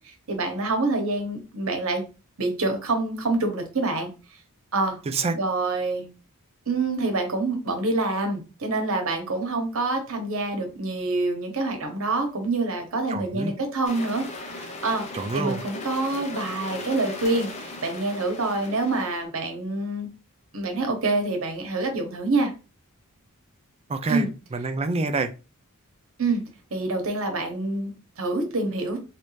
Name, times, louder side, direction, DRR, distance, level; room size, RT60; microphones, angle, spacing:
voice 1, 0.0-2.0 2.4-4.1 4.7-5.0 5.3-6.1 6.7-15.0 15.3-20.1 20.5-22.5 24.1-24.3 26.2-26.4 26.7-29.0, right 2 dB, 65° right, 1.0 m, -26 dB
voice 2, 13.1-13.5 15.1-15.6 23.9-25.3, right 3 dB, 25° right, 0.3 m, -27 dB
sound 1, 13.8-19.2, left 2 dB, 30° left, 0.6 m, -38 dB
3.1 x 2.6 x 3.1 m
head